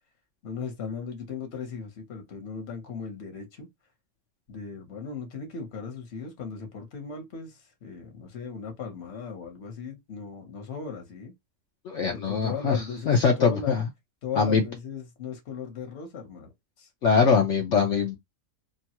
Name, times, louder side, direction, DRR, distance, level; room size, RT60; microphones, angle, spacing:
voice 1, 0.4-3.7 4.5-11.3 12.1-13.8 14.2-16.5 16.8-16.9, left 6 dB, 45° left, 1.1 m, -37 dB
voice 2, 11.8-13.9 14.4-14.6 17.0-18.2, left 5 dB, 65° left, 0.7 m, -23 dB
2.9 x 2.3 x 2.8 m
omnidirectional pair, 1.8 m